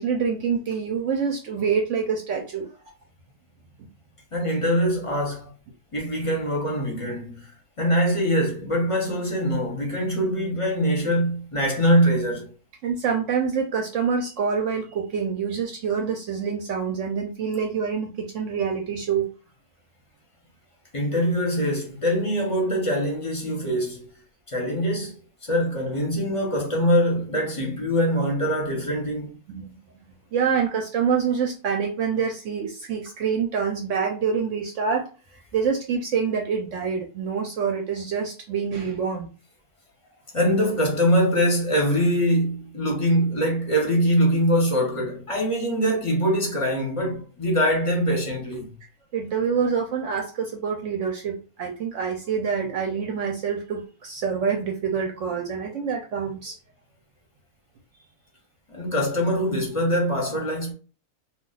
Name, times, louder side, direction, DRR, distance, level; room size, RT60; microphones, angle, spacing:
voice 1, 0.0-2.7 12.8-19.3 29.5-29.7 30.3-35.1 35.5-39.3 49.1-56.6, right 6 dB, 70° right, 0.8 m, -26 dB
voice 2, 4.3-5.5 5.9-7.5 7.8-12.5 20.9-24.1 24.5-29.4 40.3-48.7 58.7-60.7, equal, 30° left, 0.6 m, -23 dB
2.3 x 2.3 x 3.8 m
omnidirectional pair, 1.6 m